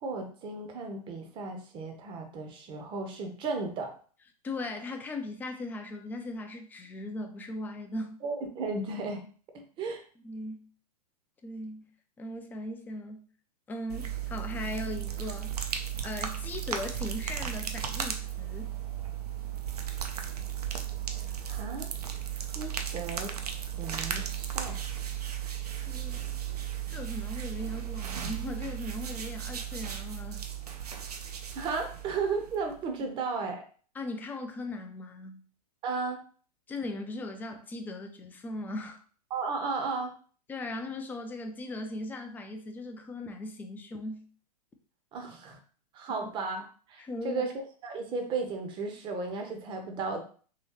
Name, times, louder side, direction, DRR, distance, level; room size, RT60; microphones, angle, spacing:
voice 1, 0.0-3.9 8.2-9.2 9.5-10.0 21.1-21.9 22.5-23.4 23.8-24.8 31.5-33.6 35.8-36.2 39.3-40.1 45.1-45.6 45.9-47.5 47.8-50.2, right 4 dB, 25° right, 4 dB, 0.7 m, -34 dB
voice 2, 4.4-8.2 10.2-10.6 11.4-11.9 12.2-13.3 13.7-15.6 16.0-18.7 25.9-26.4 26.9-30.5 33.9-35.4 36.7-39.0 40.5-44.3 46.1-46.2 47.0-47.4, left 2 dB, 10° left, 5 dB, 0.4 m, -38 dB
sound 1, 13.9-32.8, right 9 dB, 70° right, 0.6 m, -35 dB
3.0 x 2.9 x 3.0 m, 0.42 s
figure-of-eight pair, 105°, 20 cm